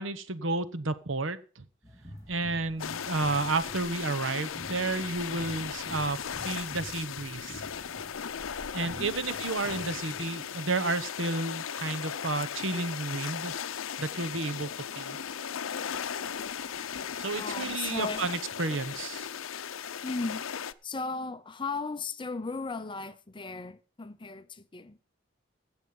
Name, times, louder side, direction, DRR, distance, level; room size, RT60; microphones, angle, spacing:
voice 1, 0.0-1.7 2.3-7.6 8.7-13.5 14.0-14.7 15.0-15.2 17.2-19.3, right 3 dB, 70° right, 1.0 m, -32 dB
sound 1, 1.8-10.2, equal, 15° right, 3.6 m, -48 dB
sound 2, 2.8-20.7, left 8 dB, 90° left, 0.6 m, -37 dB
voice 2, 9.0-9.3 17.3-18.3 20.0-20.5 20.8-25.0, left 3 dB, 25° left, 0.7 m, -36 dB
16.0 x 6.4 x 5.4 m
head